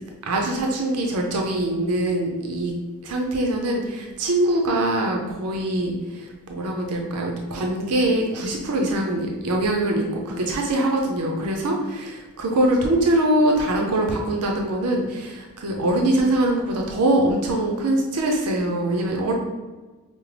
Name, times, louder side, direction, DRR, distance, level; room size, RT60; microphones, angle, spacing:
voice 1, 0.3-2.7 3.0-19.3, right 1 dB, 85° right, 1 dB, 0.5 m, -23 dB
4.9 x 2.0 x 3.2 m, 1.3 s
head